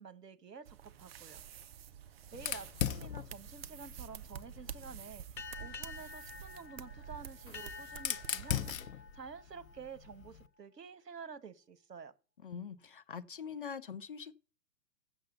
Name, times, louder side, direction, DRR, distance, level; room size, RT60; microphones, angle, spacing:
voice 1, 0.0-1.4 2.3-12.1, right 5 dB, 75° right, 1.2 m, -50 dB
sound 1, 0.6-8.7, right 9 dB, 40° right, 0.6 m, -49 dB
Fire, 2.3-5.1 6.2-10.5, left 10 dB, 55° left, 0.8 m, -40 dB
sound 2, 5.4-10.4, left 5 dB, 80° left, 1.0 m, -50 dB
voice 2, 12.4-14.3, left 6 dB, 35° left, 0.4 m, -43 dB
8.0 x 6.5 x 8.1 m
figure-of-eight pair, 115°, 49 cm